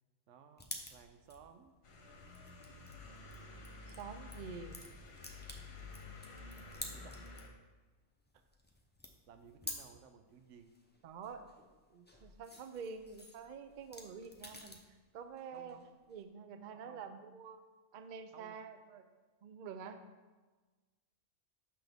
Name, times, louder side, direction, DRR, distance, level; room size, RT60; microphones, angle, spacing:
voice 1, 0.3-1.7 6.9-7.2 9.3-10.8 15.5-15.9 16.7-17.0 18.3-18.6, right 7 dB, 80° right, 7 dB, 0.9 m, -58 dB
sound 1, 0.6-7.6 7.9-9.9 10.3-14.9 15.2-16.2, left 1 dB, 15° left, 0.4 m, -52 dB
sound 2, 1.8-7.5, left 3 dB, 60° left, 1.1 m, -51 dB
voice 2, 3.9-4.8 11.0-11.5 11.9-14.8 15.1-15.8 16.1-17.6 17.9-19.1 19.4-20.1, right 6 dB, 60° right, 9 dB, 0.5 m, -47 dB
6.8 x 5.9 x 3.5 m, 1.3 s
omnidirectional pair, 1.2 m